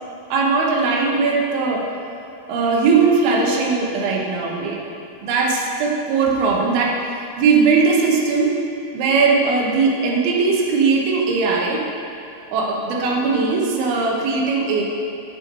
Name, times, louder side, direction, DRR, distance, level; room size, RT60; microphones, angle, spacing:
voice 1, 0.3-1.8 2.5-4.8 5.2-7.0 7.4-8.6 8.9-11.8 12.5-14.8, right 4 dB, 70° right, -2 dB, 2.4 m, -19 dB
11.0 x 7.6 x 4.7 m, 2.7 s
omnidirectional pair, 5.7 m